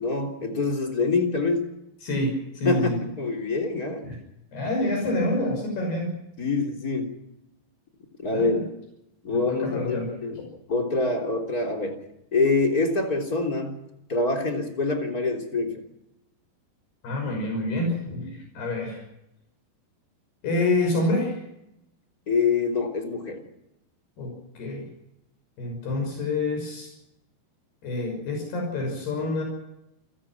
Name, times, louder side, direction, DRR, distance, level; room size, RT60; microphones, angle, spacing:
voice 1, 0.0-1.7 2.6-4.1 6.4-7.1 8.2-8.6 9.2-10.4 10.7-12.0 12.3-13.8 14.1-15.8 22.3-23.4, left 3 dB, 20° left, 2 dB, 3.5 m, -25 dB
voice 2, 2.0-3.0 4.0-4.2 4.5-6.2 8.3-8.6 9.3-10.5 17.0-19.0 20.4-21.3 24.2-24.9 25.6-26.9 27.8-29.4, left 2 dB, 70° left, 2 dB, 7.9 m, -27 dB
28.5 x 17.5 x 6.1 m, 0.85 s
omnidirectional pair, 4.8 m